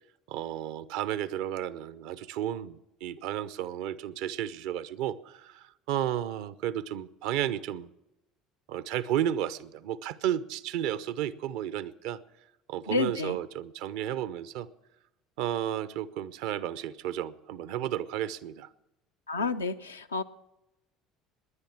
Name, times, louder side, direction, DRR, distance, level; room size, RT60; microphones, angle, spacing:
voice 1, 0.3-7.9 8.7-12.2 12.7-14.7 15.4-18.7, right 11 dB, 65° right, 16 dB, 0.7 m, -33 dB
voice 2, 12.9-13.4 19.3-20.2, left 3 dB, 85° left, 7 dB, 0.6 m, -30 dB
19.5 x 10.5 x 5.9 m, 0.93 s
figure-of-eight pair, 60°, 0 cm